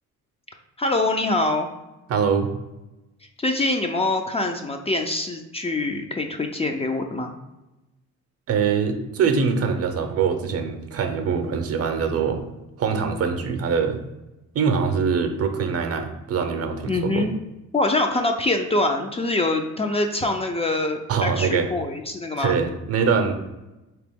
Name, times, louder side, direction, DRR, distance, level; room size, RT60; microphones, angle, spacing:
voice 1, 0.8-1.7 3.4-7.3 16.9-17.3 17.7-22.5, left 2 dB, 20° left, 4 dB, 0.4 m, -24 dB
voice 2, 2.1-2.5 8.5-12.4 12.8-14.0 14.5-17.3 21.1-21.7 22.4-23.3, right 6 dB, 55° right, 6 dB, 0.6 m, -23 dB
3.7 x 3.0 x 3.4 m, 1.0 s
cardioid pair, 90°, 30 cm